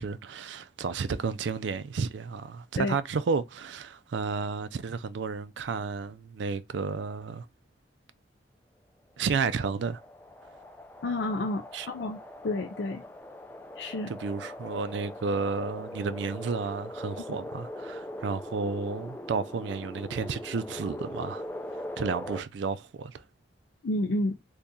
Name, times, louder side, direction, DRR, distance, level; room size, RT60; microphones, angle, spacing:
voice 1, 0.0-7.5 9.2-10.0 11.7-11.9 14.1-21.4 21.7-23.2, right 5 dB, 75° right, 0.4 m, -32 dB
sound 1, 9.2-22.4, left 1 dB, 10° left, 0.4 m, -41 dB
voice 2, 11.0-12.2 12.4-13.0 13.8-14.1 23.8-24.4, left 2 dB, 65° left, 0.5 m, -30 dB
2.8 x 2.7 x 3.6 m
head